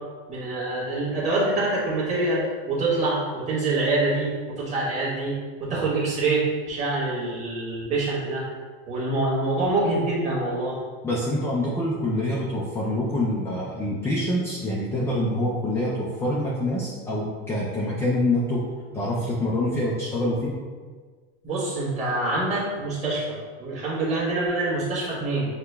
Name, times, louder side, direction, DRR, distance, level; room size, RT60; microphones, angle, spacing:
voice 1, 0.3-5.3 5.6-8.4 8.9-10.8 21.4-25.5, right 2 dB, 25° right, -7 dB, 1.4 m, -25 dB
voice 2, 11.0-18.6 18.9-20.5, left 1 dB, 10° left, -5 dB, 0.3 m, -26 dB
5.8 x 2.1 x 3.3 m, 1.5 s
supercardioid pair, 150°, 30 cm